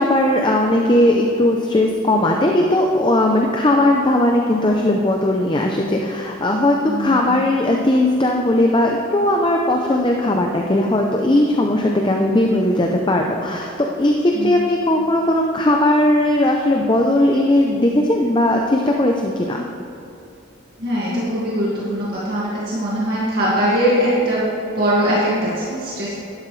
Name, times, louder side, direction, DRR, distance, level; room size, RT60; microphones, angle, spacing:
voice 1, 0.0-19.6, left 1 dB, 20° left, 1 dB, 0.6 m, -18 dB
voice 2, 6.9-7.4 14.3-14.6 20.8-24.5 24.7-26.1, equal, 50° right, -8 dB, 2.1 m, -21 dB
12.0 x 11.5 x 3.3 m, 2.7 s
head